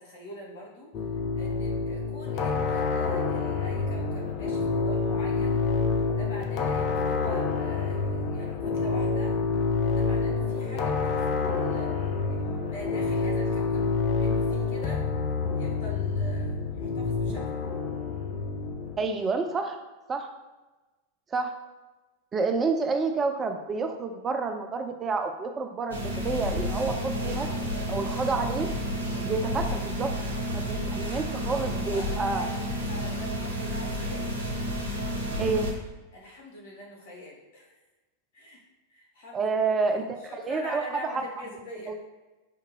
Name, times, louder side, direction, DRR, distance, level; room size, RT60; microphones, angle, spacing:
voice 1, 0.0-5.7 6.1-9.3 9.8-11.9 12.3-15.1 15.5-17.6 27.2-28.1 31.9-34.3 36.1-37.8 38.3-38.6 38.9-39.6 39.9-40.0 40.4-42.0, left 1 dB, 55° left, -1 dB, 1.1 m, -44 dB
sound 1, 0.9-19.0, left 4 dB, 40° left, 0.5 m, -28 dB
voice 2, 19.0-19.8 20.1-20.3 21.3-21.5 22.3-26.0 26.2-27.5 27.9-28.7 29.2-30.1 30.5-32.5 35.4-35.7 39.3-40.8 41.1-41.2 41.9-42.0, right 4 dB, 20° right, 5 dB, 0.4 m, -29 dB
sound 2, 25.9-35.7, equal, 75° right, 0.8 m, -31 dB
4.3 x 2.7 x 3.8 m, 1.2 s
figure-of-eight pair, 90°, 0 cm